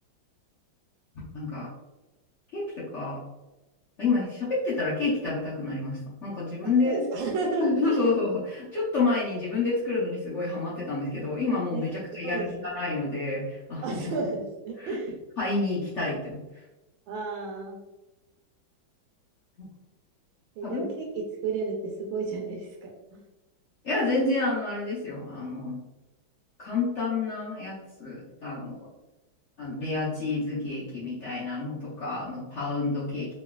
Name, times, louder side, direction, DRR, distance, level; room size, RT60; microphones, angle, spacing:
voice 1, 1.3-1.7 2.5-3.2 4.0-7.0 7.6-14.0 14.8-14.9 15.4-16.4 20.6-20.8 21.1-21.3 23.8-25.8 26.6-28.9 29.6-33.3, left 3 dB, 55° left, -9 dB, 0.8 m, -29 dB
voice 2, 6.6-8.0 11.7-11.8 12.2-12.7 13.8-15.1 17.1-17.8 20.6-21.0 21.4-22.9, right 3 dB, 85° right, 0 dB, 1.3 m, -32 dB
3.1 x 3.1 x 2.3 m, 1.0 s
omnidirectional pair, 2.2 m